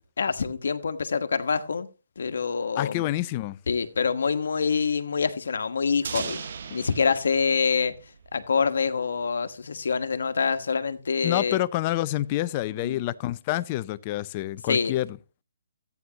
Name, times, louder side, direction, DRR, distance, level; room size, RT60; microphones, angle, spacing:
voice 1, 0.2-1.9 2.2-3.0 3.7-6.4 6.7-7.9 8.3-11.6 12.8-13.0 14.7-15.0, left 5 dB, 70° left, 1.2 m, -26 dB
voice 2, 2.8-3.6 11.2-15.2, left 15 dB, 25° left, 0.4 m, -28 dB
sound 1, 6.0-8.8, right 6 dB, 50° right, 0.8 m, -38 dB
14.0 x 9.3 x 2.8 m
hypercardioid pair, 165°, 0 cm